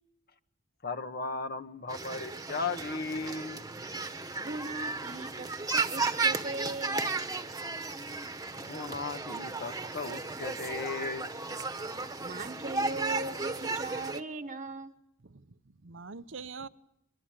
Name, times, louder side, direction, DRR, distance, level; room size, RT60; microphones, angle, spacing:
voice 1, 0.8-3.5 8.6-11.6, left 4 dB, 55° left, 8 dB, 1.6 m, -36 dB
sound 1, 1.9-14.2, right 3 dB, 20° right, 1.3 m, -34 dB
voice 2, 4.4-7.1 12.2-14.9, right 2 dB, 40° right, 8 dB, 1.3 m, -39 dB
voice 3, 15.2-16.7, right 4 dB, 85° right, 13 dB, 0.9 m, -44 dB
23.5 x 23.0 x 9.0 m, 0.79 s
head